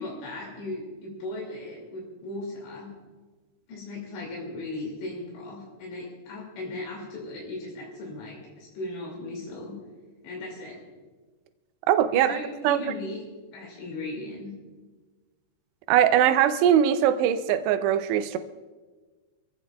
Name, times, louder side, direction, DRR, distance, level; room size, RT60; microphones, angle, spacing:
voice 1, 0.0-2.9 3.7-9.8 10.2-10.8 12.1-13.2 13.5-14.5, left 2 dB, 80° left, 4.9 m, -37 dB
voice 2, 11.9-12.4 12.6-12.8 15.9-18.4, right 10 dB, 80° right, 2.8 m, -21 dB
26.5 x 15.5 x 2.4 m
omnidirectional pair, 5.0 m